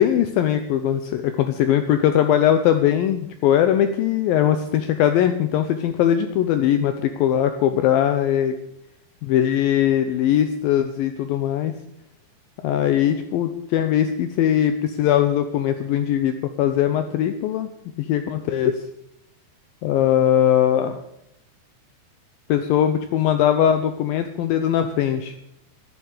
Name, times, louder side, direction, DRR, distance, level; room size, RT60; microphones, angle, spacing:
voice 1, 0.0-8.6 9.2-11.7 12.6-17.7 18.0-18.8 19.8-21.0 22.5-25.3, left 10 dB, 80° left, 8 dB, 2.2 m, -20 dB
12.0 x 9.7 x 8.2 m, 0.80 s
omnidirectional pair, 4.7 m